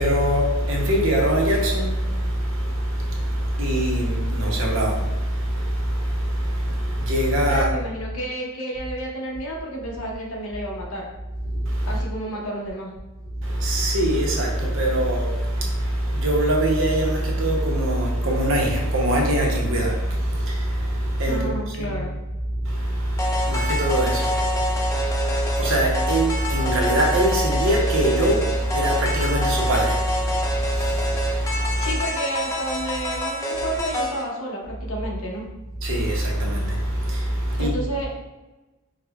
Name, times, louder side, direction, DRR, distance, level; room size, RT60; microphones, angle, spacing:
voice 1, 0.0-7.7 11.5-12.0 13.3-22.1 22.5-32.0 35.8-37.8, right 1 dB, 60° right, 0.7 m, -23 dB
voice 2, 7.5-11.1 11.8-12.9 21.3-22.1 31.8-35.4 37.5-38.1, right 1 dB, 70° left, 0.7 m, -30 dB
sound 1, 23.2-34.2, left 1 dB, 15° left, 0.3 m, -27 dB
4.7 x 2.1 x 2.2 m
head